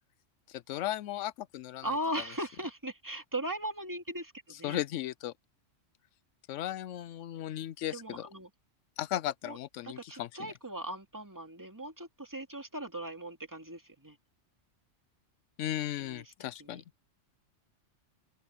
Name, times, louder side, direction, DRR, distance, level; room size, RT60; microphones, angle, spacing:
voice 1, 0.5-1.9 4.6-5.3 6.5-8.2 9.0-10.3 15.6-16.8, left 13 dB, 80° left, 0.9 m, -36 dB
voice 2, 1.8-4.8 7.9-8.5 9.4-9.6 9.8-14.2 16.0-16.8, right 1 dB, 15° right, 2.4 m, -39 dB
open air
omnidirectional pair, 1.3 m